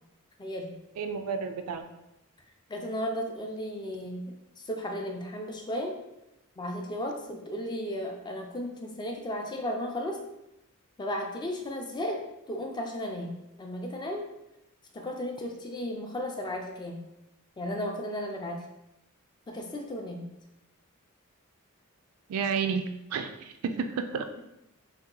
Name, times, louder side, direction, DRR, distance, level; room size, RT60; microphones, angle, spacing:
voice 1, 0.4-0.7 2.7-4.2 4.6-5.9 6.6-10.2 11.0-14.3 14.9-17.0 17.6-18.6 19.5-20.3, left 1 dB, 20° left, 3 dB, 0.3 m, -34 dB
voice 2, 1.0-1.9 22.3-22.8 23.1-24.3, right 6 dB, 85° right, 8 dB, 0.3 m, -31 dB
2.8 x 2.2 x 3.7 m, 0.89 s
head